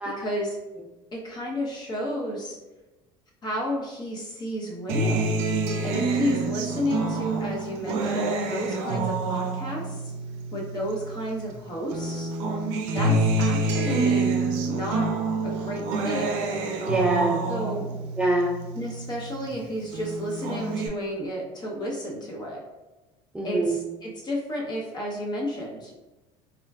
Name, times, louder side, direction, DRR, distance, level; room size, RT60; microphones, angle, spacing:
voice 1, 0.2-0.5 1.1-2.6 3.4-5.4 5.8-10.0 10.5-12.3 12.9-14.4 14.7-15.1 15.4-16.5 17.5-17.9 18.7-22.6 23.4-26.0, equal, 30° left, -2 dB, 0.8 m, -32 dB
Acoustic guitar, 4.9-11.5 11.9-19.5 19.9-20.9, right 2 dB, 85° right, 0.4 m, -27 dB
voice 2, 16.7-17.4 18.2-18.5 23.3-23.9, right 2 dB, 10° right, -4 dB, 0.3 m, -25 dB
3.7 x 2.1 x 2.3 m, 1.1 s
supercardioid pair, 110°, 14 cm